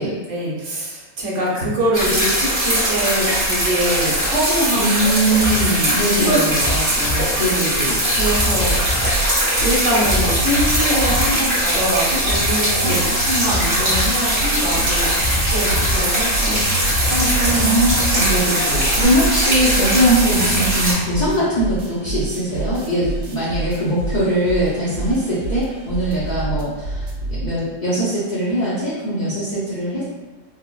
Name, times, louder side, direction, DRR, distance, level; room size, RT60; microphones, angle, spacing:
voice 1, 0.0-5.4 5.8-7.3 8.1-8.7 9.6-12.9 13.3-17.7, right 1 dB, 65° right, -5 dB, 1.1 m, -24 dB
sound 1, 1.9-20.9, right 1 dB, 35° right, 1.2 m, -20 dB
voice 2, 4.7-6.6 7.4-8.0 12.8-13.0 17.5-27.0 27.3-30.0, right 1 dB, 55° left, -9 dB, 0.5 m, -21 dB
sound 2, 5.3-19.0, left 1 dB, 85° left, 1.0 m, -28 dB
sound 3, 8.1-11.3 11.7-11.8 12.5-27.5, right 3 dB, 90° right, 1.1 m, -29 dB
3.4 x 2.0 x 2.3 m, 1.2 s
omnidirectional pair, 1.5 m